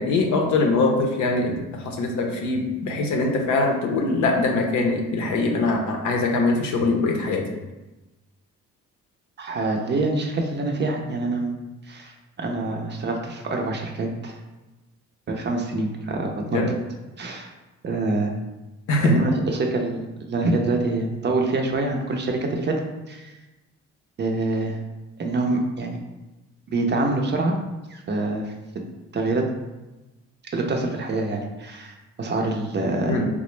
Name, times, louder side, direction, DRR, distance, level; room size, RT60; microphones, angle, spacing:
voice 1, 0.0-7.4 16.5-16.7 18.9-19.2 33.1-33.3, left 3 dB, 70° left, 2 dB, 0.6 m, -22 dB
voice 2, 9.4-11.5 11.9-14.4 15.3-16.6 17.2-17.5 17.8-18.3 19.0-22.8 23.1-23.3 24.2-24.8 25.2-26.0 26.7-27.5 27.9-28.5 29.1-29.4 30.5-33.2, right 2 dB, 35° right, 2 dB, 0.5 m, -25 dB
3.5 x 2.0 x 3.1 m, 1.1 s
cardioid pair, 90°, 30 cm